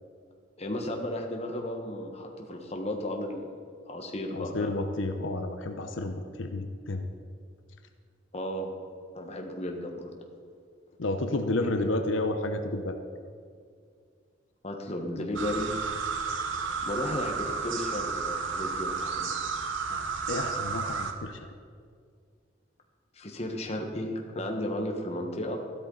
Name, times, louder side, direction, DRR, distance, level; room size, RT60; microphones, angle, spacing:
voice 1, 0.6-3.6 3.9-4.7 8.3-8.7 9.1-10.1 14.6-15.8 16.8-19.3 23.1-25.6, left 1 dB, 35° left, 2 dB, 1.3 m, -34 dB
voice 2, 4.3-7.1 11.0-13.0 19.9-21.4, left 2 dB, 90° left, 6 dB, 0.8 m, -31 dB
sound 1, 15.4-21.1, right 5 dB, 85° right, 1.0 m, -32 dB
13.5 x 12.5 x 4.0 m, 2.1 s
head